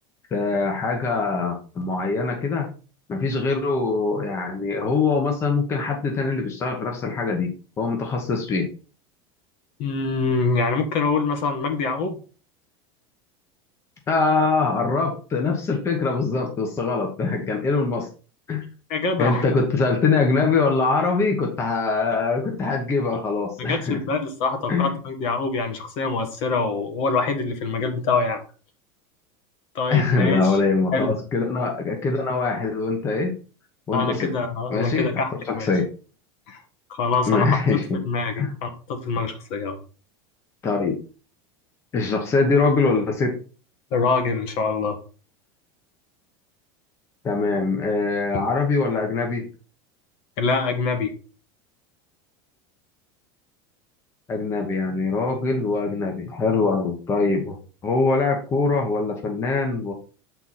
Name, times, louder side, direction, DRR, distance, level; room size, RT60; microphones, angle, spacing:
voice 1, 0.3-2.7 3.1-7.5 7.8-8.6 14.1-18.1 18.5-18.7 19.2-24.0 24.7-25.0 29.9-33.3 33.9-34.3 34.7-35.8 37.3-38.0 38.4-38.5 40.6-40.9 41.9-43.3 47.2-49.4 54.3-57.6 57.8-59.9, left 4 dB, 20° left, 2 dB, 1.1 m, -23 dB
voice 2, 9.8-12.2 18.9-19.5 23.6-28.4 29.7-30.6 30.9-31.2 33.9-35.7 36.5-36.6 36.9-37.8 38.0-39.8 43.9-45.0 50.4-51.1, left 4 dB, 45° left, 7 dB, 1.4 m, -25 dB
7.5 x 4.5 x 4.2 m, 0.37 s
supercardioid pair, 170°, 13 cm